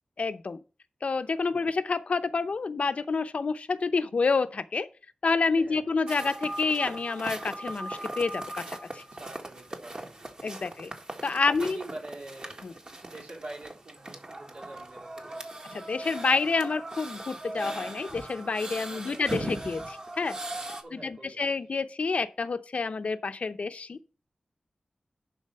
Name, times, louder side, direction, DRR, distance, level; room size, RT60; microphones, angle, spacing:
voice 1, 0.2-0.6 1.0-4.9 5.2-9.0 10.4-10.9 11.2-11.8 12.6-12.7 15.7-20.4 20.9-24.0, left 4 dB, 70° left, 0.7 m, -28 dB
voice 2, 5.6-5.9 9.1-10.3 10.5-10.7 11.4-12.6 13.0-15.4 18.9-19.4 20.8-21.6, right 2 dB, 85° right, 3.9 m, -45 dB
sound 1, 6.1-20.8, right 2 dB, 40° right, 1.8 m, -39 dB
11.0 x 4.2 x 5.5 m
wide cardioid pair, 85°, 2 cm